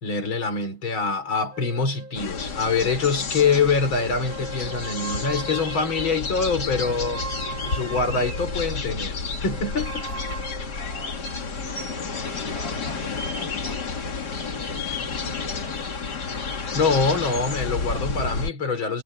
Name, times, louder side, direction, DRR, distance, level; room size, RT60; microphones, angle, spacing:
voice 1, 0.0-7.2 7.7-10.1 16.7-19.0, left 4 dB, 80° left, 4.4 m, -24 dB
sound 1, 1.5-3.6 3.9-8.8 9.5-12.1, right 3 dB, 25° right, 2.0 m, -39 dB
sound 2, 2.1-18.5, left 4 dB, 55° left, 2.7 m, -31 dB
voice 2, 9.9-16.2, right 2 dB, 65° right, 8.9 m, -46 dB
omnidirectional pair, 2.2 m